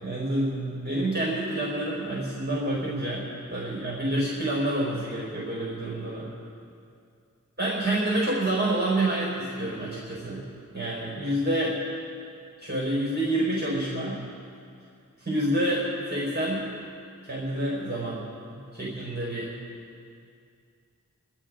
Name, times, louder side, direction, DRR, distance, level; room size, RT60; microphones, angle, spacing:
voice 1, 0.0-6.3 7.6-10.4 10.7-11.8 12.6-14.2 15.2-16.7 17.2-18.2 18.5-19.5, right 1 dB, 30° right, -6 dB, 4.9 m, -28 dB
28.5 x 13.0 x 3.8 m, 2.3 s
wide cardioid pair, 50°, 34 cm